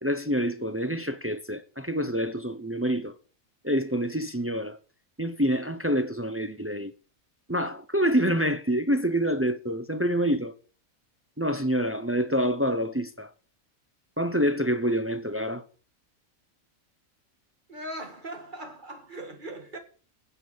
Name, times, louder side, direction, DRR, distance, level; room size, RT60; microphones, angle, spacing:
voice 1, 0.0-3.1 3.6-4.8 5.2-6.9 7.5-10.5 11.4-13.3 14.2-15.6, equal, 15° right, 0.4 m, -27 dB
voice 2, 17.7-19.8, right 1 dB, 35° right, 2.1 m, -39 dB
9.5 x 8.2 x 6.9 m
omnidirectional pair, 1.5 m